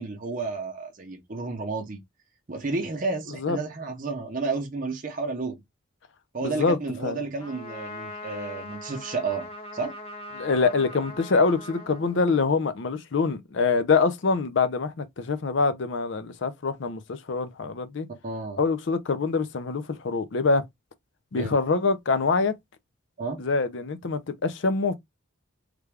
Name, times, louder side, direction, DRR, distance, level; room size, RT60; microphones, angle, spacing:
voice 1, 0.0-2.0 2.5-5.6 6.3-9.9 18.2-18.6 21.4-21.5 23.2-23.4, right 3 dB, 40° right, 0.6 m, -31 dB
voice 2, 6.4-6.8 7.0-7.2 10.4-18.1 18.6-20.6 21.3-22.5 23.4-24.9, left 4 dB, 60° left, 0.5 m, -25 dB
Trumpet, 7.4-12.7, left 1 dB, 25° left, 0.8 m, -41 dB
3.3 x 2.3 x 3.3 m
head